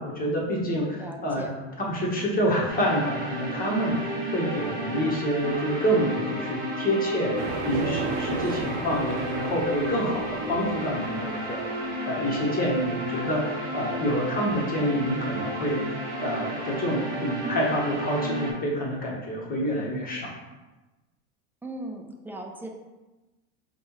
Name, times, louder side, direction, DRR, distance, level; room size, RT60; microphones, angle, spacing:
voice 1, 0.0-1.4 1.9-4.0 4.3-20.3, equal, 25° left, -3 dB, 1.2 m, -27 dB
voice 2, 1.0-1.5 21.6-22.7, right 1 dB, 5° right, 1 dB, 0.3 m, -38 dB
sound 1, 2.7-18.5, right 1 dB, 25° right, 1.2 m, -33 dB
sound 2, 7.4-11.9, right 5 dB, 80° right, 0.5 m, -34 dB
5.2 x 2.4 x 3.1 m, 1.1 s
supercardioid pair, 110°, 35 cm